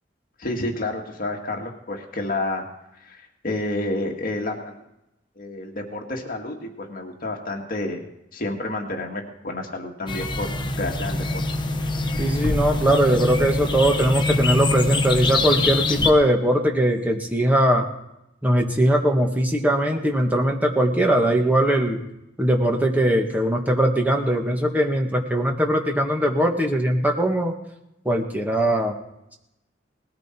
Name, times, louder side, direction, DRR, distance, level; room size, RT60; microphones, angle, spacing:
voice 1, 0.4-2.7 3.0-3.2 3.4-4.8 5.4-8.0 8.3-11.4, left 2 dB, 50° left, 1 dB, 2.1 m, -30 dB
sound 1, 10.1-16.1, left 2 dB, 25° left, 1.1 m, -24 dB
voice 2, 12.2-17.9 18.4-22.0 22.4-27.5 28.0-29.0, right 1 dB, 10° right, 1 dB, 1.8 m, -20 dB
19.5 x 13.5 x 4.6 m, 0.87 s
head